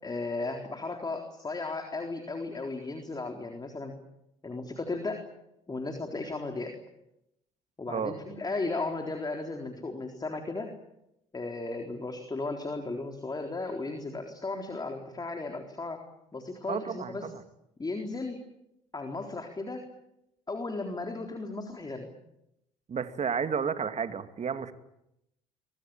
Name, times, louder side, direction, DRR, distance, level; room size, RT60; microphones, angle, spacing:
voice 1, 0.0-3.9 4.4-5.2 5.7-6.7 7.8-10.7 11.3-16.0 16.3-17.3 17.8-18.4 18.9-19.9 20.5-22.1, left 3 dB, 25° left, 4 dB, 3.9 m, -35 dB
voice 2, 16.7-17.4 22.9-24.7, right 6 dB, 40° right, 9 dB, 2.5 m, -32 dB
24.5 x 23.5 x 8.9 m, 0.84 s
hypercardioid pair, 55°, 17 cm